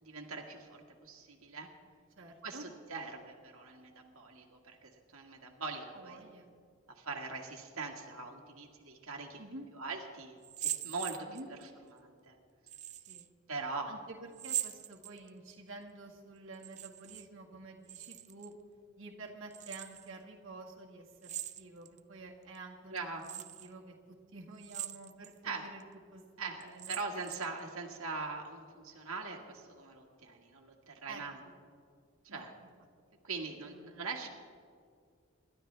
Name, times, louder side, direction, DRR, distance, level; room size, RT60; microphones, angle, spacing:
voice 1, 0.0-1.7 2.4-6.2 7.0-9.4 9.8-11.6 11.9-12.3 13.5-13.9 22.9-23.2 25.4-25.7 26.4-31.4 32.3-32.5 33.2-34.3, right 3 dB, 90° right, 0 dB, 1.8 m, -42 dB
voice 2, 2.2-2.7 5.9-6.5 9.4-9.7 11.3-11.5 12.9-13.3 13.9-18.5 19.0-23.3 23.6-25.8 26.1-27.0 31.1-31.5 32.3-32.5 33.6-34.1, right 2 dB, 65° right, -2 dB, 1.8 m, -50 dB
sound 1, 10.4-11.7 12.7-13.3 14.3-15.5 16.5-17.3 17.5-18.5 19.5-20.1 21.2-22.0 22.5-22.6 23.2-23.7 24.6-25.3 25.8-25.9 26.6-27.6, right 12 dB, 35° right, 0.5 m, -41 dB
26.5 x 12.5 x 3.4 m, 2.2 s
head